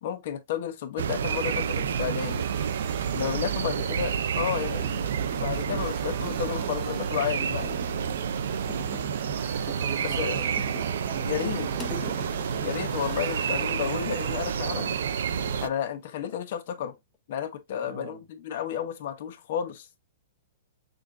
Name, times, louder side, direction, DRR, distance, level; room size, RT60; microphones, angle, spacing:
voice 1, 0.0-2.4 3.1-7.8 10.0-10.5 11.2-11.7 12.6-15.0 15.6-16.9 17.3-19.9, left 9 dB, 50° left, 1.0 m, -32 dB
sound 1, 1.0-15.7, right 7 dB, 75° right, 0.4 m, -29 dB
sound 2, 1.3-15.7, right 8 dB, 20° right, 0.4 m, -45 dB
voice 2, 3.1-3.9 8.5-9.1 9.6-12.7 17.8-18.2, right 8 dB, 35° right, 0.9 m, -43 dB
sound 3, 5.2-5.9 6.3-7.0 7.6-8.3 8.7-9.2 9.7-11.1 11.4-12.8 14.4-14.8 15.3-16.4 16.7-17.2, left 4 dB, 10° left, 0.8 m, -44 dB
6.3 x 2.5 x 2.5 m
hypercardioid pair, 165°, 0 cm